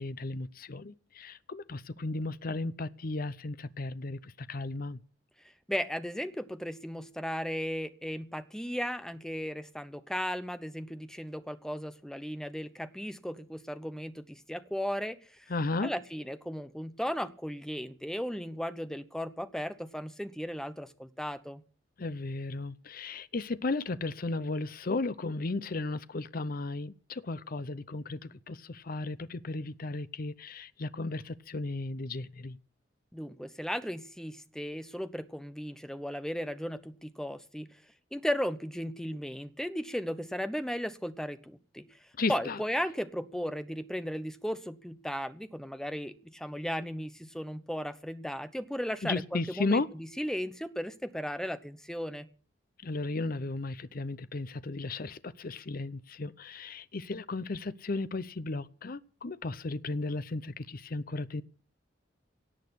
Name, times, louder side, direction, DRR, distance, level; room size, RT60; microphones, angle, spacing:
voice 1, 0.0-5.0 15.5-15.9 22.0-32.6 42.2-42.6 49.0-49.9 52.8-61.4, left 3 dB, 50° left, 0.7 m, -35 dB
voice 2, 5.7-15.4 15.8-21.6 33.1-37.7 38.1-41.9 42.3-52.3, equal, 5° left, 0.9 m, -36 dB
17.5 x 6.6 x 9.8 m
head